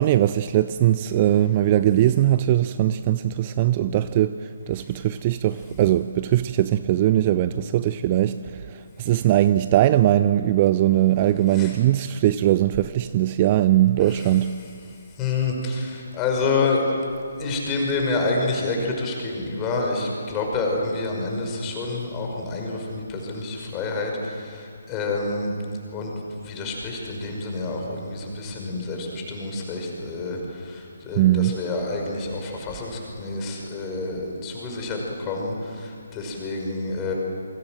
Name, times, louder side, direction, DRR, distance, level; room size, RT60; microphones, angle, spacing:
voice 1, 0.0-8.3 8.7-14.5 31.2-31.6, right 13 dB, 25° right, 13 dB, 0.5 m, -20 dB
voice 2, 15.2-16.8 17.4-25.5 25.9-26.1 26.4-37.1, left 3 dB, 15° left, 0 dB, 5.6 m, -28 dB
28.5 x 24.5 x 7.7 m, 2.3 s
figure-of-eight pair, 140°, 0 cm